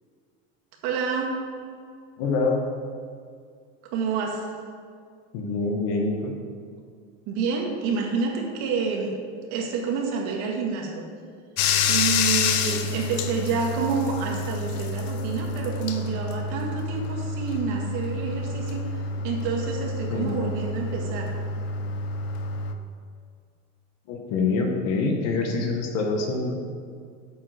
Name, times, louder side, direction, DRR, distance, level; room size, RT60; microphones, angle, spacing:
voice 1, 0.8-1.4 3.8-4.5 7.3-9.2 9.5-11.0 11.9-21.3, right 5 dB, 55° right, 0 dB, 1.8 m, -28 dB
voice 2, 2.2-2.6 5.3-6.3 12.7-12.9 20.1-20.3 24.1-26.6, left 3 dB, 50° left, 3 dB, 1.4 m, -25 dB
Bathtub (filling or washing), 11.6-22.7, left 4 dB, 65° left, 0.9 m, -28 dB
8.6 x 7.2 x 5.1 m, 2.1 s
supercardioid pair, 155°, 34 cm